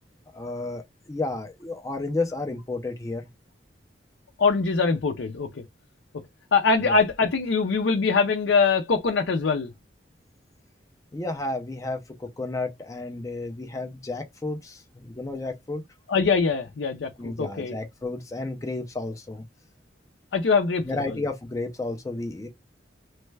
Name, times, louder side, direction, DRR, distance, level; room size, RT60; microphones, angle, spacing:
voice 1, 0.3-0.8 1.1-3.3 6.8-7.0 11.1-15.8 17.2-19.4 20.8-22.5, left 2 dB, 20° left, 0.4 m, -32 dB
voice 2, 4.4-5.6 6.5-9.7 16.1-17.7 20.3-20.9, left 4 dB, 75° left, 0.5 m, -23 dB
3.2 x 2.2 x 3.2 m
head